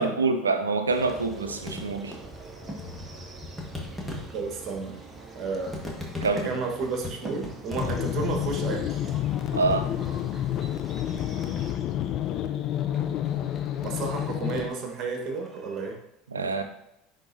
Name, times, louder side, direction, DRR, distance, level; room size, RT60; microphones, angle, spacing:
voice 1, 0.0-2.2 6.2-6.6 9.5-9.9 16.3-16.6, right 3 dB, 85° right, 9 dB, 0.5 m, -26 dB
sound 1, 0.9-11.7, right 2 dB, 20° right, 1.2 m, -44 dB
sound 2, 1.6-16.0, left 2 dB, 5° left, 1.6 m, -43 dB
voice 2, 4.3-5.0 5.3-5.8 6.3-9.0 13.8-16.0, right 4 dB, 40° right, 2 dB, 1.4 m, -32 dB
sound 3, 7.8-14.7, left 11 dB, 45° left, 0.5 m, -29 dB
9.9 x 3.9 x 2.7 m, 0.82 s
figure-of-eight pair, 70°, 0 cm